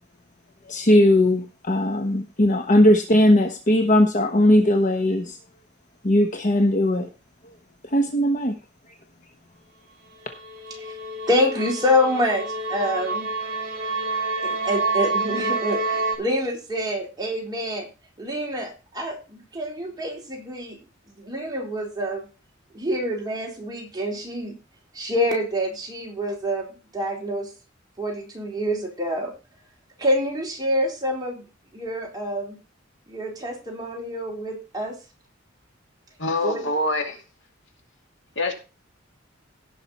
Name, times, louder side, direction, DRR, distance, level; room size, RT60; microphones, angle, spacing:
voice 1, 0.7-5.4 6.0-7.1 7.9-8.6, left 1 dB, 40° left, 1.1 m, -19 dB
sound 1, 10.3-16.2, right 3 dB, 45° right, 3.0 m, -28 dB
voice 2, 11.3-13.3 14.4-17.9 18.2-20.8 21.2-22.3 22.7-24.5 24.9-26.7 26.9-27.5 28.0-29.3 30.0-31.4 31.7-32.6 33.1-35.0 36.4-36.7, equal, 20° right, 3.8 m, -26 dB
voice 3, 36.2-37.2 38.4-38.5, left 2 dB, 65° left, 2.5 m, -25 dB
17.0 x 5.9 x 4.2 m
head